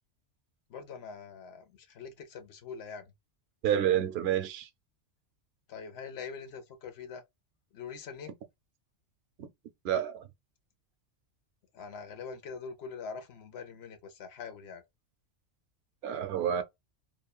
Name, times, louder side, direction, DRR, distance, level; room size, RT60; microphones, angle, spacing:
voice 1, 0.7-3.1 5.7-7.2 7.7-8.3 11.7-14.8, left 5 dB, 65° left, 0.8 m, -43 dB
voice 2, 3.6-4.7 9.4-9.5 9.8-10.3 16.0-16.6, right 10 dB, 65° right, 0.8 m, -29 dB
3.0 x 2.1 x 2.2 m
omnidirectional pair, 1.2 m